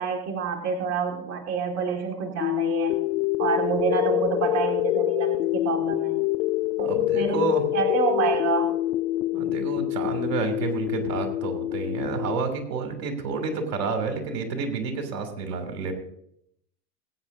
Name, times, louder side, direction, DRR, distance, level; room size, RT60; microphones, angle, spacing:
voice 1, 0.0-2.9 3.4-6.2 6.8-8.7, right 6 dB, 35° right, 2 dB, 2.0 m, -28 dB
sound 1, 2.4-12.4, left 16 dB, 65° left, 0.7 m, -26 dB
voice 2, 6.8-7.6 9.3-15.9, right 4 dB, 75° right, 5 dB, 3.0 m, -29 dB
21.0 x 9.3 x 2.7 m, 0.74 s
hypercardioid pair, 105°, 48 cm